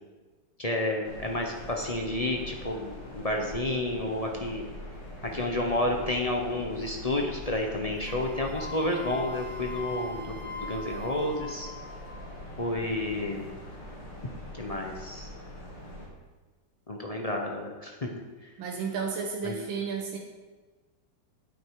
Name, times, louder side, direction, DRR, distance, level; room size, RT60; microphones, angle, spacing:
voice 1, 0.6-4.6 5.2-11.7 12.6-13.4 14.6-15.3 16.9-18.1 19.4-19.6, left 1 dB, 35° left, 1 dB, 0.6 m, -30 dB
sound 1, 1.0-16.0, left 1 dB, 70° left, 2.8 m, -43 dB
Wind instrument woodwind instrument, 8.1-12.2, left 2 dB, ahead, 0.9 m, -41 dB
voice 2, 18.6-20.2, right 5 dB, 90° right, 0 dB, 1.9 m, -32 dB
9.0 x 8.5 x 4.8 m, 1.3 s
omnidirectional pair, 2.1 m